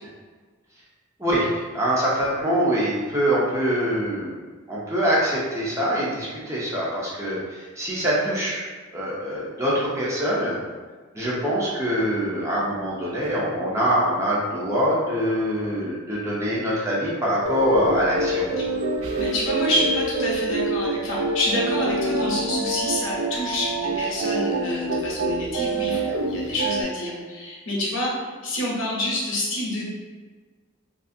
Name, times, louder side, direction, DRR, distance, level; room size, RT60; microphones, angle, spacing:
voice 1, 1.7-4.4 4.7-8.7 8.9-10.6 11.1-18.4, equal, 15° right, -7 dB, 0.5 m, -24 dB
sound 1, 17.4-26.8, right 2 dB, 85° right, 0.4 m, -26 dB
voice 2, 19.2-29.8, left 1 dB, 65° left, -4 dB, 0.8 m, -27 dB
2.5 x 2.4 x 2.6 m, 1.5 s
head